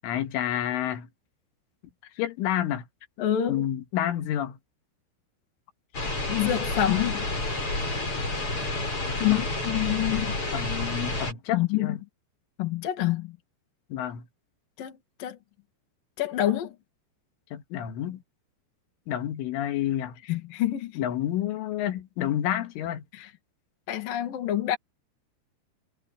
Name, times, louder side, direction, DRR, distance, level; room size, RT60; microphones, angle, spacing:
voice 1, 0.0-1.1 2.2-2.9 3.5-4.6 9.1-9.4 10.5-12.0 13.9-14.3 17.5-18.2 19.1-20.2 21.0-23.0, left 11 dB, 75° left, 4.2 m, -29 dB
voice 2, 3.2-3.6 6.3-7.3 9.2-10.4 11.5-12.0 12.6-13.4 14.8-15.4 16.2-16.8 20.3-21.0 23.1-23.3 23.9-24.8, left 12 dB, 55° left, 3.2 m, -27 dB
sound 1, 5.9-11.3, left 2 dB, 25° left, 8.3 m, -30 dB
omnidirectional pair, 5.8 m